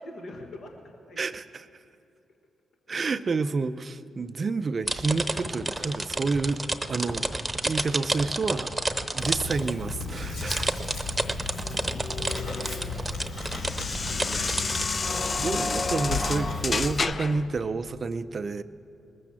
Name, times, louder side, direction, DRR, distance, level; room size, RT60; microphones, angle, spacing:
voice 1, 0.0-1.2 10.5-12.5, left 1 dB, 65° left, 3 dB, 1.1 m, -47 dB
voice 2, 1.2-1.7 2.9-6.6 6.9-7.4 7.6-8.7 9.1-10.7 14.3-14.6 15.4-18.6, right 4 dB, 45° right, 11 dB, 0.5 m, -29 dB
sound 1, 4.8-14.8, right 2 dB, 15° right, 0.9 m, -30 dB
Writing, 9.2-17.0, left 3 dB, 80° left, 3.6 m, -35 dB
sound 2, 11.6-17.5, left 4 dB, 45° left, 0.5 m, -31 dB
19.5 x 7.0 x 7.5 m, 2.6 s
supercardioid pair, 50°, 0 cm